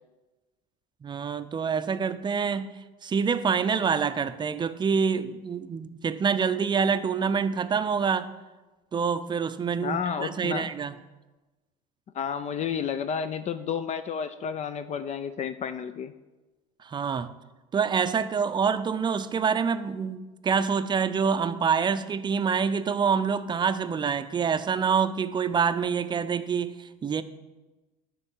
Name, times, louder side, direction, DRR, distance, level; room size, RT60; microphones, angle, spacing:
voice 1, 1.0-2.7 3.0-8.3 8.9-11.0 16.8-17.3 17.7-27.2, right 6 dB, 25° right, 12 dB, 0.5 m, -26 dB
voice 2, 9.8-10.7 12.1-16.1, left 7 dB, 40° left, 11 dB, 0.5 m, -31 dB
9.9 x 3.9 x 7.3 m, 1.2 s
supercardioid pair, 95°, 19 cm